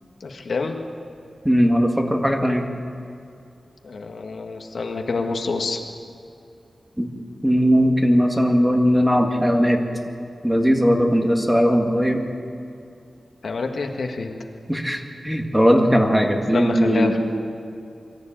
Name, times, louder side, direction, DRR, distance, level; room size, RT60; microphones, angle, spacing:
voice 1, 0.2-0.8 3.8-5.8 13.4-14.4 16.5-17.2, left 3 dB, 70° left, 3 dB, 1.8 m, -27 dB
voice 2, 1.5-2.6 7.0-7.1 7.4-9.8 10.4-12.2 14.7-17.2, equal, 5° right, 2 dB, 1.9 m, -18 dB
23.5 x 14.0 x 9.0 m, 2.5 s
wide cardioid pair, 130°, 0 cm